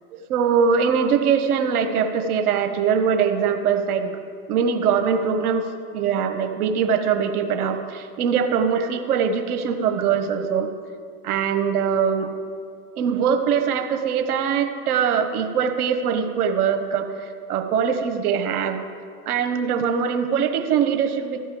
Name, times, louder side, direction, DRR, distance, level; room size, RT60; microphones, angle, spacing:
voice 1, 0.1-4.1 4.5-5.7 5.9-10.7 11.2-12.3 13.0-18.8 19.3-21.4, right 7 dB, 75° right, 6 dB, 1.3 m, -22 dB
14.5 x 5.5 x 9.3 m, 2.2 s
hypercardioid pair, 105°, 45 cm